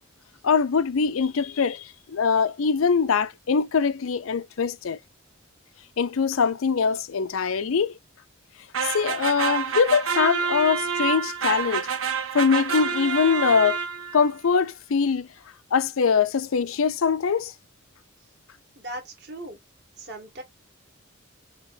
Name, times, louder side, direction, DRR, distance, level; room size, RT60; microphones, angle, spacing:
voice 1, 0.4-5.0 6.0-8.0 8.8-11.9 12.3-13.8 14.1-15.3 15.7-17.5, left 5 dB, 75° left, 0.5 m, -23 dB
sound 1, 8.7-14.3, right 6 dB, 85° right, 1.3 m, -28 dB
voice 2, 18.8-19.6 20.0-20.4, right 1 dB, 50° right, 2.2 m, -38 dB
6.4 x 2.9 x 2.7 m
head